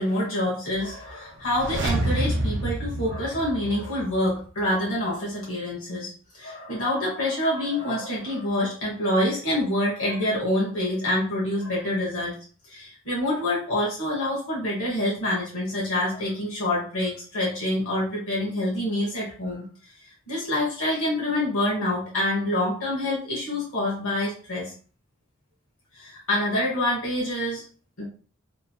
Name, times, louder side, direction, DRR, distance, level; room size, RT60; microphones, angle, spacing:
voice 1, 0.0-12.4 12.7-19.7 20.3-24.7 25.9-27.6 28.0-28.1, left 1 dB, 85° left, -5 dB, 1.0 m, -26 dB
sound 1, 1.4-4.3 4.6-4.7, right 1 dB, 60° right, 0.4 m, -28 dB
2.9 x 2.7 x 2.2 m, 0.42 s
head